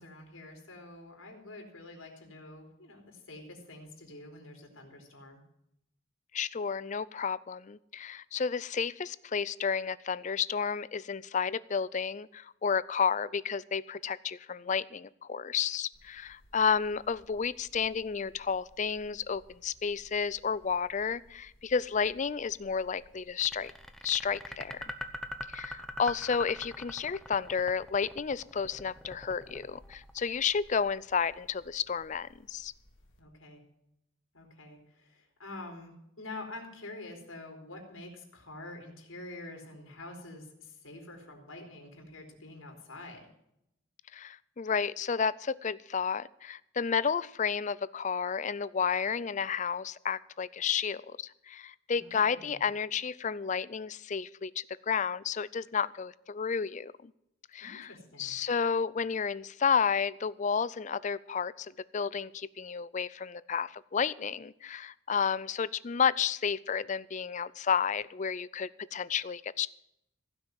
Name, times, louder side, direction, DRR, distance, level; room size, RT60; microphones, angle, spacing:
voice 1, 0.0-5.4 33.2-33.6 34.3-43.3 51.9-52.6 57.6-58.3, left 2 dB, 90° left, 2 dB, 3.6 m, -47 dB
voice 2, 6.3-23.7 24.0-24.9 25.5-32.7 44.1-51.2 51.5-57.1 57.5-57.9 58.2-69.7, left 6 dB, 35° left, 19 dB, 0.4 m, -31 dB
sound 1, 15.9-33.2, equal, 70° left, 2.0 m, -61 dB
sound 2, 23.4-30.5, left 1 dB, ahead, 0.8 m, -42 dB
16.0 x 6.2 x 9.3 m, 0.79 s
head